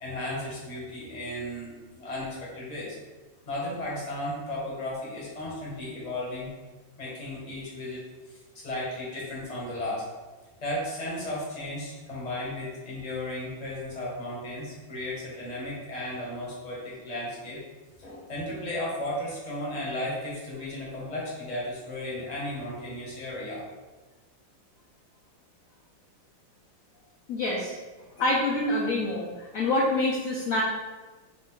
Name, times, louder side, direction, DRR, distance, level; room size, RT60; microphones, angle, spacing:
voice 1, 0.0-3.0 3.5-6.5 7.0-10.0 10.6-17.6 18.0-23.6, left 1 dB, 30° left, -6 dB, 0.9 m, -35 dB
voice 2, 27.3-27.7 28.2-29.3 29.5-30.6, left 2 dB, 70° left, -4 dB, 0.8 m, -26 dB
4.0 x 2.6 x 3.6 m, 1.2 s
omnidirectional pair, 2.1 m